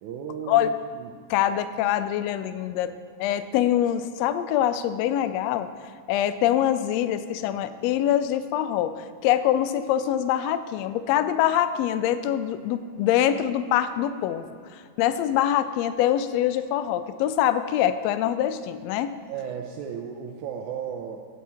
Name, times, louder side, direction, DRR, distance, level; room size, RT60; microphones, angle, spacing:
voice 1, 0.0-1.2 19.3-21.2, right 7 dB, 80° right, 0 dB, 2.0 m, -35 dB
voice 2, 1.3-2.9 3.2-5.7 6.1-14.4 15.0-19.1, left 11 dB, 85° left, 11 dB, 1.5 m, -24 dB
17.0 x 5.9 x 4.3 m, 2.1 s
omnidirectional pair, 3.5 m